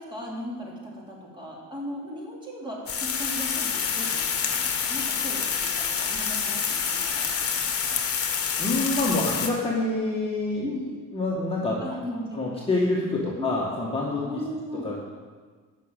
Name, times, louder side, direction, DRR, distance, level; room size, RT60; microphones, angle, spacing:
voice 1, 0.0-8.0 10.6-10.8 11.8-12.4 13.4-13.5 14.2-14.9, equal, 15° right, -3 dB, 2.9 m, -37 dB
sound 1, 2.9-9.5, left 6 dB, 45° left, 1.4 m, -27 dB
voice 2, 8.6-10.7 11.1-11.8 12.3-14.3 14.8-15.0, left 2 dB, 15° left, -5 dB, 1.7 m, -26 dB
12.0 x 6.2 x 9.0 m, 1.5 s
cardioid pair, 150°, 33 cm